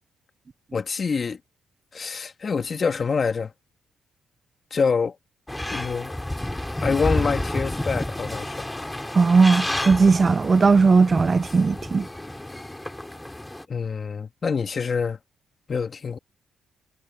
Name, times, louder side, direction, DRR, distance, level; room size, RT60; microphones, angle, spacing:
voice 1, 0.7-1.4 1.9-3.5 4.7-5.2 5.7-6.1 6.8-8.7 13.7-15.2 15.7-16.2, left 5 dB, 40° left, 2.1 m, -26 dB
sound 1, 5.5-13.6, left 1 dB, 10° left, 3.7 m, -30 dB
voice 2, 9.1-12.1, right 4 dB, 35° right, 1.0 m, -17 dB
cardioid pair, 90°, 0 cm